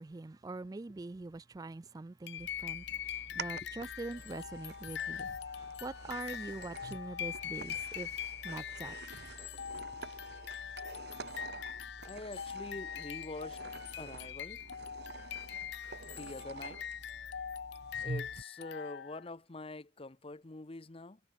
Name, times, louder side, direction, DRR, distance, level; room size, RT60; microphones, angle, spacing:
voice 1, 0.0-9.3, right 2 dB, 20° right, 0.3 m, -44 dB
sound 1, 2.3-19.3, left 9 dB, 60° left, 0.5 m, -42 dB
sound 2, 2.4-18.4, right 3 dB, 60° right, 1.5 m, -48 dB
voice 2, 12.0-13.6 14.0-14.6 16.1-16.8 18.0-21.2, left 2 dB, 30° left, 0.8 m, -45 dB
head